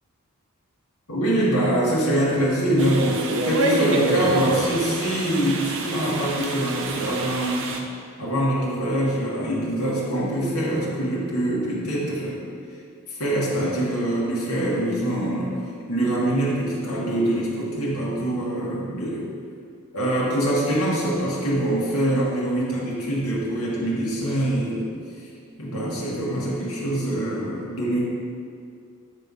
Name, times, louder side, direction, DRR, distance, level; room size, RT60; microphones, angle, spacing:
voice 1, 1.1-7.7 8.2-12.4 13.1-15.5 15.9-19.2 19.9-24.9 25.6-28.0, right 1 dB, 80° left, -6 dB, 1.6 m, -24 dB
sound 1, 2.8-7.8, right 2 dB, 60° right, 0.6 m, -27 dB
8.2 x 3.3 x 5.5 m, 2.3 s
head